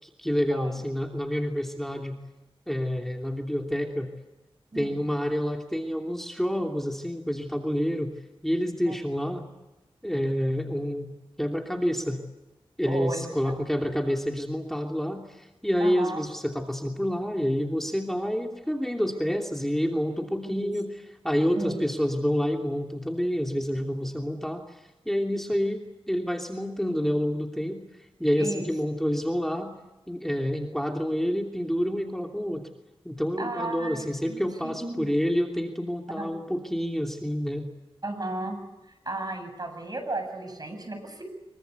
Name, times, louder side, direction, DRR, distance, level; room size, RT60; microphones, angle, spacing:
voice 1, 0.0-2.2 2.7-4.1 4.7-8.1 8.4-9.4 10.0-11.1 11.4-12.2 12.8-29.7 30.1-32.7 33.0-37.7, equal, 5° left, 2 dB, 3.0 m, -28 dB
voice 2, 12.8-13.5 15.8-16.2 20.4-20.7 21.6-21.8 28.4-28.7 33.4-35.1 36.2-36.3 38.0-38.6 39.0-41.2, right 2 dB, 45° right, 6 dB, 8.0 m, -34 dB
25.5 x 23.5 x 8.4 m, 1.0 s
wide cardioid pair, 60°, 10 cm